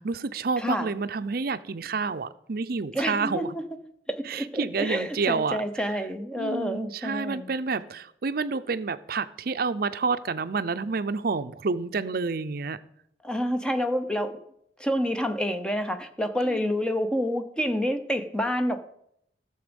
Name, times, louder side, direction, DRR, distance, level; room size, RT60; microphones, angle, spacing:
voice 1, 0.0-3.6 4.3-5.6 6.4-12.8 16.4-16.7, right 4 dB, 55° right, 0.6 m, -29 dB
voice 2, 0.6-0.9 2.9-3.6 4.1-7.5 13.2-14.4 14.8-18.8, equal, 5° left, 0.8 m, -28 dB
15.0 x 7.1 x 5.2 m
head